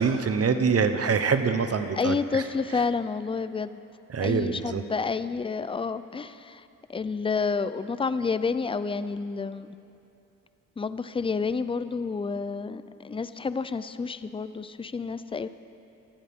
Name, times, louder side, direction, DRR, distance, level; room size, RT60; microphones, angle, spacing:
voice 1, 0.0-2.4 4.1-4.8, right 5 dB, 45° right, 9 dB, 0.9 m, -25 dB
voice 2, 1.9-3.8 4.2-6.6 6.9-9.8 10.8-15.5, left 4 dB, 15° left, 13 dB, 0.4 m, -29 dB
19.0 x 14.0 x 3.7 m, 2.8 s
cardioid pair, 100°, 33 cm